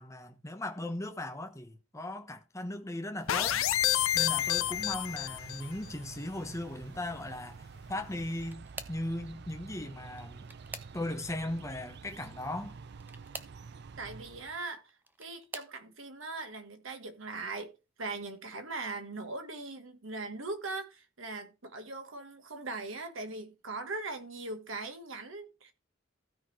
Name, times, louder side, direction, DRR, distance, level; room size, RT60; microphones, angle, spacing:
voice 1, 0.0-3.6 4.1-7.6 7.9-10.5 10.9-12.8, left 1 dB, 15° left, 1.1 m, -38 dB
sound 1, 3.2-14.6, right 5 dB, 55° right, 0.5 m, -49 dB
sound 2, 3.3-5.7, left 12 dB, 85° left, 0.6 m, -29 dB
sound 3, 8.1-9.1 10.1-11.3 12.9-13.6 14.7-15.8 16.5-16.9 17.3-17.4 18.8-18.9, right 2 dB, 10° right, 0.7 m, -47 dB
voice 2, 14.0-17.7 18.0-25.7, right 3 dB, 75° right, 1.5 m, -40 dB
15.5 x 5.3 x 3.2 m
head